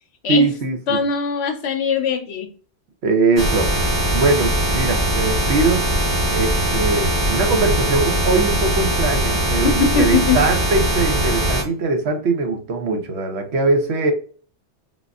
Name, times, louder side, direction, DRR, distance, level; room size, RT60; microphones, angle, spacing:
voice 1, 0.3-1.0 3.0-5.8 6.3-14.1, right 3 dB, 75° right, 1.0 m, -21 dB
voice 2, 0.9-2.5 9.6-10.5, left 6 dB, 75° left, 0.8 m, -21 dB
sound 1, 3.4-11.6, equal, 20° right, 0.7 m, -20 dB
3.8 x 2.5 x 2.3 m
omnidirectional pair, 1.1 m